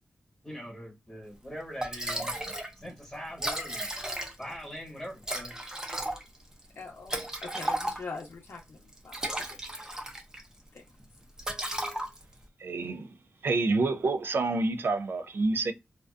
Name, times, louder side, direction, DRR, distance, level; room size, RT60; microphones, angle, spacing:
voice 1, 0.4-2.3 2.8-3.9 4.4-5.5, equal, 15° left, 1.2 m, -42 dB
Liquid, 1.4-1.5 1.8-2.7 3.0-3.1 3.3-4.6 5.2-8.3 8.9-10.5 10.8-11.0 11.4-12.4, right 1 dB, 15° right, 0.6 m, -34 dB
voice 2, 6.7-9.9 10.7-10.8, left 4 dB, 65° left, 0.7 m, -44 dB
voice 3, 12.6-13.2 13.4-15.7, right 3 dB, 60° right, 0.4 m, -28 dB
2.5 x 2.2 x 2.3 m
wide cardioid pair, 105°, 4 cm